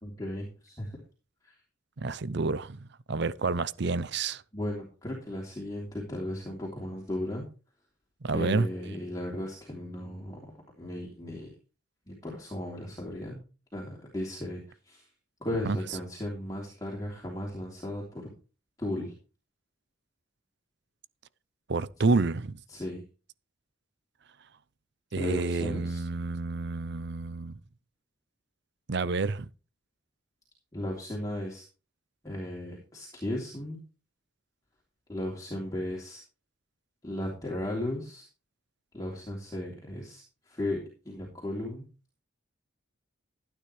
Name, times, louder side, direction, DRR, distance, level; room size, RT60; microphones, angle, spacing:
voice 1, 0.0-1.0 1.4-1.6 4.5-7.4 8.3-10.5 10.8-11.5 12.1-13.4 13.7-15.1 15.4-18.3 18.8-19.1 22.7-23.0 25.1-26.0 30.7-31.6 32.2-33.8 35.1-36.2 37.0-38.3 38.9-41.8, left 1 dB, 20° left, 3.3 m, -36 dB
voice 2, 2.0-4.4 8.3-8.7 15.6-16.0 21.7-22.6 25.1-27.5 28.9-29.5, right 3 dB, 55° right, 0.7 m, -29 dB
15.5 x 9.5 x 3.3 m
head